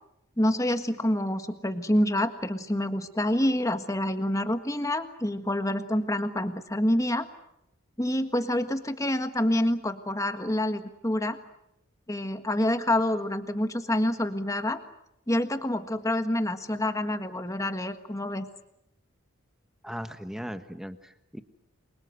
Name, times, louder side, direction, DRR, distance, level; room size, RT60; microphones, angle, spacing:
voice 1, 0.4-7.2 8.0-11.4 12.1-14.8 15.3-18.5, left 1 dB, 15° left, 8 dB, 1.5 m, -27 dB
voice 2, 19.8-21.4, equal, ahead, 9 dB, 1.3 m, -38 dB
29.5 x 24.0 x 8.0 m, 0.83 s
head